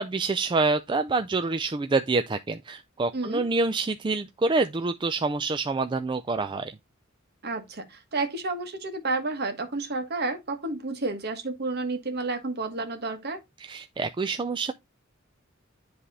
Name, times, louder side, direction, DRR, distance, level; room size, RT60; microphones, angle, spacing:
voice 1, 0.0-6.7 13.6-14.7, right 3 dB, 25° right, 0.4 m, -27 dB
voice 2, 3.1-3.4 7.4-13.4, right 3 dB, 50° right, 1.5 m, -31 dB
10.0 x 3.4 x 4.1 m
head